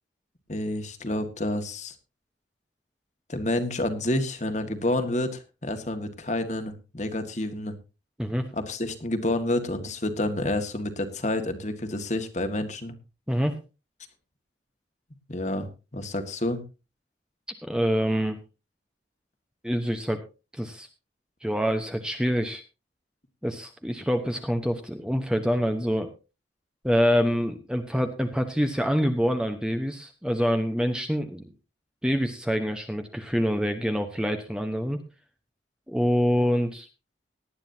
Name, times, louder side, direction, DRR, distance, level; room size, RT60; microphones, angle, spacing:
voice 1, 0.5-2.0 3.3-7.7 8.5-12.9 15.3-15.7 15.9-16.6, left 1 dB, 40° left, 7 dB, 1.8 m, -29 dB
voice 2, 17.6-18.4 19.6-20.2 20.5-20.9 21.4-22.6 23.4-26.1 26.8-31.5 32.0-35.0 35.9-36.9, equal, 5° right, 6 dB, 1.0 m, -26 dB
18.5 x 11.5 x 2.8 m, 0.30 s
head